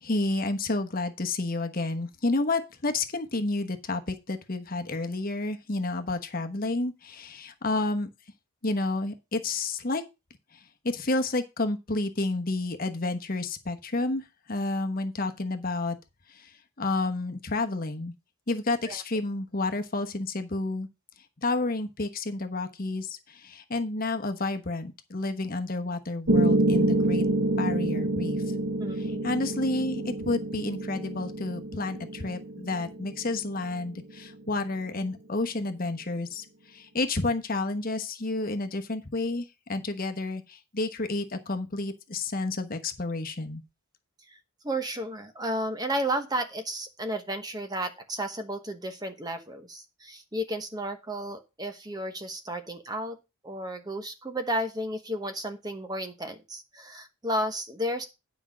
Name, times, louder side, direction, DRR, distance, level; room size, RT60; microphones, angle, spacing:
voice 1, 0.0-8.1 8.6-10.0 10.5-16.0 16.3-18.1 18.5-20.9 21.4-27.3 27.6-28.4 28.9-43.6, left 2 dB, 40° left, 6 dB, 1.0 m, -30 dB
Piano, 26.3-34.3, right 1 dB, 70° right, 1.3 m, -27 dB
voice 2, 28.8-29.3 44.3-44.4 44.6-53.2 53.4-58.1, right 1 dB, 20° right, 7 dB, 1.1 m, -33 dB
9.9 x 5.2 x 6.1 m, 0.26 s
head